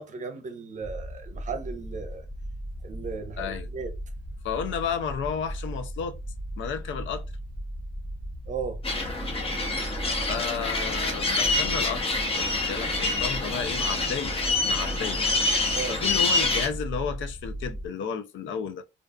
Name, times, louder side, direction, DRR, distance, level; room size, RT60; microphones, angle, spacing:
voice 1, 0.0-2.2 2.8-3.9 8.5-8.8 15.7-16.0, right 5 dB, 40° right, 0.7 m, -36 dB
sound 1, 0.8-17.9, equal, ahead, 0.5 m, -37 dB
voice 2, 3.4-3.7 4.4-6.2 6.6-7.2 10.3-14.4 14.6-15.2 15.9-18.8, left 7 dB, 70° left, 0.5 m, -32 dB
sound 2, 8.8-16.7, left 3 dB, 30° left, 0.9 m, -26 dB
2.5 x 2.4 x 2.2 m
cardioid pair, 90°, 20 cm